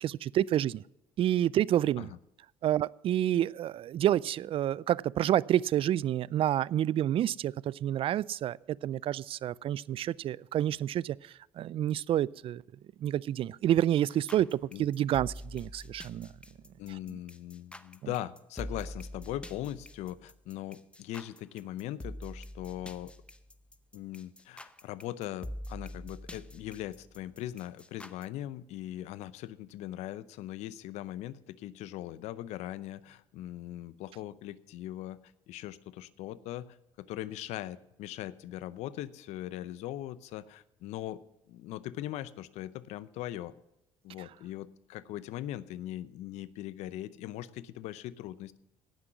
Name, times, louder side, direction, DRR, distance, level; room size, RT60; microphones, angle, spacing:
voice 1, 0.0-0.8 1.2-2.1 2.6-11.2 11.6-12.6 13.0-16.3, right 11 dB, 50° right, 23 dB, 0.3 m, -28 dB
sound 1, 14.1-28.3, equal, 10° left, 0.8 m, -45 dB
voice 2, 16.8-23.1 23.9-35.2 35.5-36.7 37.0-41.2 41.5-43.5 44.0-48.6, left 13 dB, 75° left, 17 dB, 0.6 m, -40 dB
17.5 x 6.1 x 6.0 m, 0.86 s
supercardioid pair, 70°, 12 cm